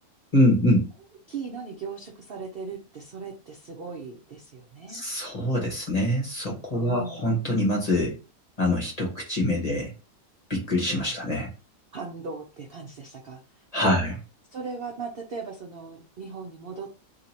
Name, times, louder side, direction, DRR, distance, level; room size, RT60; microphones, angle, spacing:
voice 1, 0.3-0.9 4.9-8.2 8.6-9.9 10.5-11.5 13.7-14.1, left 1 dB, 25° left, -2 dB, 1.0 m, -24 dB
voice 2, 1.3-5.0 6.7-7.4 11.0-11.1 11.9-13.4 13.8-14.0 14.5-16.9, right 5 dB, 65° right, 1 dB, 0.5 m, -38 dB
2.9 x 2.8 x 4.0 m, 0.32 s
omnidirectional pair, 1.8 m